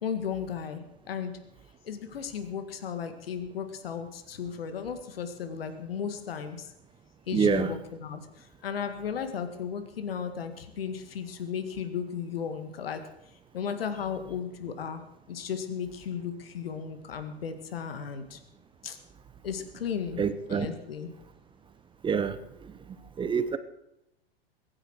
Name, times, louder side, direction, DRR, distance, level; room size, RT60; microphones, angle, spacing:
voice 1, 0.0-1.3 1.8-6.7 7.3-13.0 13.5-15.0 15.3-18.4 18.8-19.0 19.4-21.1, left 7 dB, 70° left, 9 dB, 1.9 m, -35 dB
voice 2, 7.3-7.7 20.2-20.7 22.0-22.4 23.2-23.6, right 6 dB, 15° right, 12 dB, 1.0 m, -26 dB
22.5 x 9.9 x 4.7 m, 0.84 s
figure-of-eight pair, 100°, 31 cm